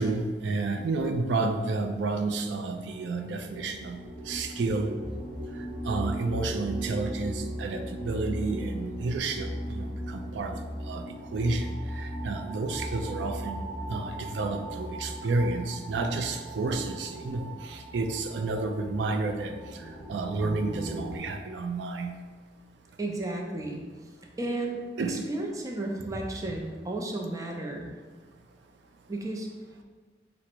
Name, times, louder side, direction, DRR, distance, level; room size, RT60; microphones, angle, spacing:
voice 1, 0.0-4.0 4.3-4.9 5.8-10.6 10.9-11.1 11.3-13.6 13.9-19.6 20.1-22.2 25.0-25.2, right 3 dB, 85° right, 5 dB, 0.4 m, -30 dB
sound 1, 2.9-21.2, equal, 5° right, 0.8 m, -38 dB
voice 2, 23.0-23.8 24.4-24.8 25.1-27.9 29.1-29.5, right 2 dB, 20° right, 1 dB, 0.4 m, -33 dB
4.9 x 2.0 x 4.4 m, 1.4 s
head